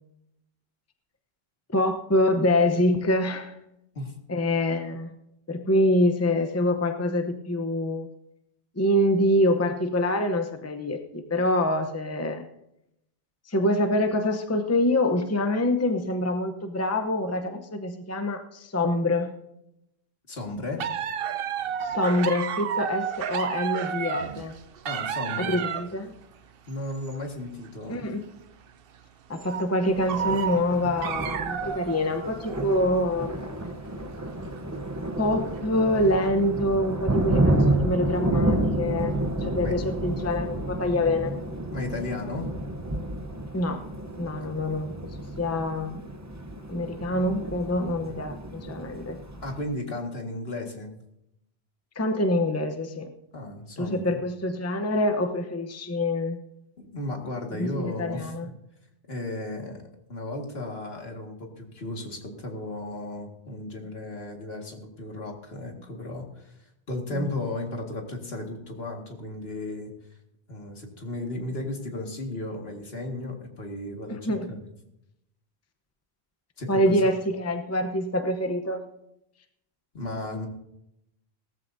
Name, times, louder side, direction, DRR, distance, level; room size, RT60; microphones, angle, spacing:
voice 1, 1.7-3.5 4.3-5.1 5.5-8.1 8.8-12.4 13.5-19.3 21.8-24.5 25.4-26.1 27.9-28.2 29.3-33.4 35.2-39.2 39.4-41.3 43.5-43.8 44.2-45.1 45.4-46.0 46.7-49.2 52.0-53.1 53.8-56.4 57.6-58.5 67.1-67.3 74.1-74.6 76.7-78.8, left 1 dB, 15° left, 7 dB, 0.8 m, -25 dB
voice 2, 20.3-20.8 24.8-25.6 26.7-28.1 39.6-39.8 41.7-42.5 44.4-44.5 49.4-50.9 53.3-54.2 56.8-58.5 59.1-59.8 60.1-66.5 66.9-69.9 70.5-74.6 76.6-77.0 79.9-80.5, left 2 dB, 65° left, 1 dB, 2.3 m, -34 dB
sound 1, 20.8-26.0 26.7-27.2 27.7-27.8 28.3-28.4 29.4-29.7 30.1-32.8 33.2-33.3 34.3-34.6 35.4-35.6 36.0-36.1, right 8 dB, 65° right, 0.8 m, -31 dB
Thunder, 29.9-49.6, right 1 dB, 15° right, 0.8 m, -30 dB
17.5 x 14.0 x 2.7 m, 0.82 s
omnidirectional pair, 1.1 m